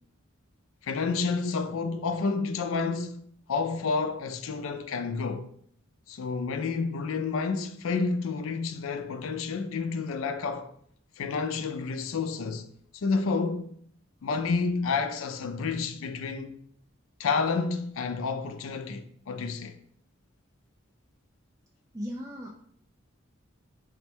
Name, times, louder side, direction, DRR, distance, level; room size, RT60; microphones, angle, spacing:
voice 1, 0.8-3.2 3.5-5.5 6.1-10.7 11.2-12.7 12.9-13.7 14.2-16.5 17.2-19.8, left 4 dB, 80° left, 0.4 m, -30 dB
voice 2, 21.9-22.5, equal, 15° right, 0.3 m, -36 dB
4.0 x 2.2 x 4.3 m
head